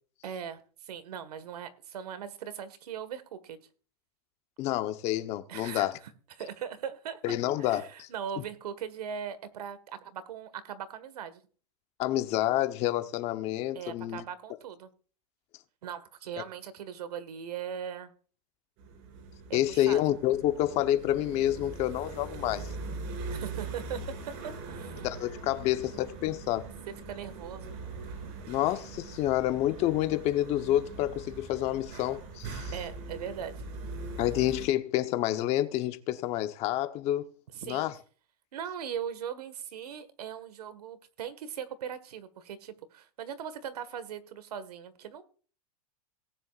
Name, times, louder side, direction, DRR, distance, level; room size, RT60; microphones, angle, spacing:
voice 1, 0.2-3.6 5.5-6.1 6.4-11.4 13.7-14.9 15.8-18.1 19.5-20.0 23.3-24.0 24.4-25.1 26.9-27.7 32.7-33.5 37.5-37.9 38.5-45.2, right 8 dB, 90° right, 1.7 m, -40 dB
voice 2, 4.6-6.0 7.2-8.1 8.4-8.5 12.0-14.2 19.5-22.7 25.0-26.7 28.5-32.7 34.2-37.3 37.6-37.9, left 14 dB, 35° left, 0.9 m, -28 dB
sound 1, 18.8-34.7, right 3 dB, 45° right, 3.6 m, -41 dB
18.5 x 9.5 x 2.5 m
supercardioid pair, 150°, 19 cm